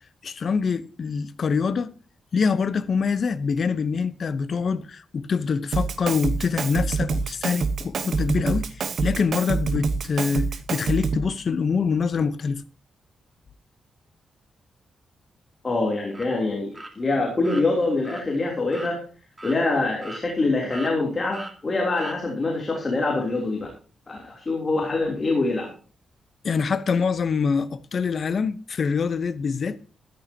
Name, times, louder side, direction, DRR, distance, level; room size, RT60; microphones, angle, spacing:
voice 1, 0.2-1.9 2.3-8.7 9.0-12.6 26.4-29.8, left 5 dB, 45° left, 0.9 m, -25 dB
Drum kit, 5.7-11.3, right 4 dB, 55° right, 1.2 m, -26 dB
voice 2, 15.6-19.0 19.4-23.7 24.1-25.7, left 2 dB, 25° left, 3.3 m, -25 dB
sound 1, 16.1-16.3 16.7-16.9 17.4-17.6 18.0-18.2 18.7-18.9 19.4-19.6 20.0-20.5 20.7-20.9 21.3-21.5 22.0-22.2, right 2 dB, 15° right, 2.1 m, -38 dB
14.0 x 13.0 x 2.9 m
wide cardioid pair, 150°, 0 cm